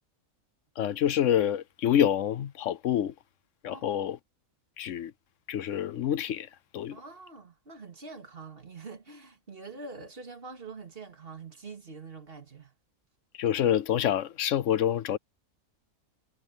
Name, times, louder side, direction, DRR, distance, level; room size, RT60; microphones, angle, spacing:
voice 1, 0.8-3.1 3.6-4.2 4.8-5.1 5.5-6.5 6.7-7.0 13.4-15.2, left 10 dB, 65° left, 1.0 m, -27 dB
voice 2, 6.9-12.7, right 4 dB, 45° right, 2.4 m, -45 dB
omnidirectional pair, 1.4 m